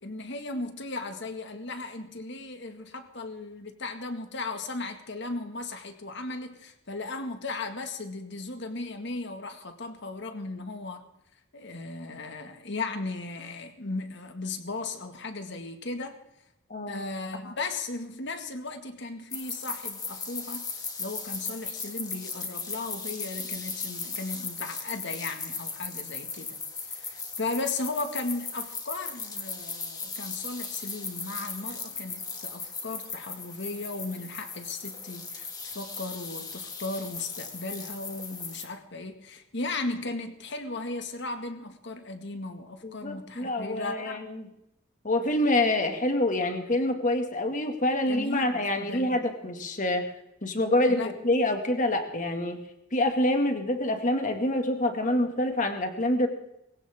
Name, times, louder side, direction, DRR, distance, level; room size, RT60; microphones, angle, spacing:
voice 1, 0.0-11.1 11.5-16.2 16.9-20.6 21.0-26.6 26.8-44.2 48.1-49.2 50.9-51.1, left 3 dB, 65° left, 6 dB, 2.0 m, -36 dB
voice 2, 16.7-17.0 42.8-44.5 45.0-50.0 50.4-52.6 52.9-56.3, left 1 dB, 40° left, 5 dB, 2.2 m, -26 dB
sound 1, 19.3-38.6, left 4 dB, 20° left, 2.3 m, -37 dB
20.5 x 17.0 x 3.7 m, 0.82 s
head